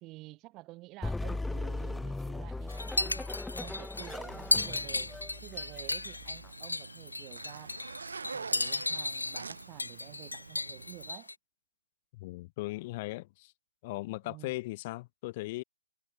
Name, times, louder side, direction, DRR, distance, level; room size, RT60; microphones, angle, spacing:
voice 1, 0.0-3.3 3.6-7.8 8.3-11.3 14.2-14.5, right 20 dB, 25° right, 1.5 m, -50 dB
sound 1, 1.0-6.5, left 2 dB, 5° left, 1.1 m, -38 dB
sound 2, 2.7-11.3, left 2 dB, 85° left, 0.6 m, -35 dB
Zipper (clothing), 4.2-11.1, right 5 dB, 70° right, 0.7 m, -46 dB
voice 2, 12.1-13.5 13.8-15.6, left 20 dB, 35° left, 0.7 m, -38 dB
figure-of-eight pair, 135°, 0 cm